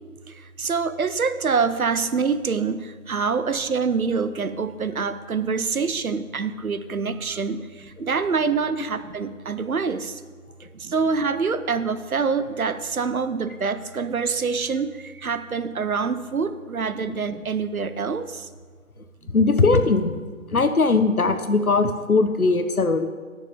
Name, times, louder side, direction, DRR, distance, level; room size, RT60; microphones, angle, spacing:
voice 1, 0.6-10.2 10.8-18.5, right 5 dB, 75° right, 11 dB, 0.8 m, -25 dB
voice 2, 19.3-20.2 20.5-23.1, left 3 dB, 75° left, 9 dB, 1.1 m, -20 dB
18.0 x 6.6 x 3.6 m, 1.5 s
figure-of-eight pair, 160°, 43 cm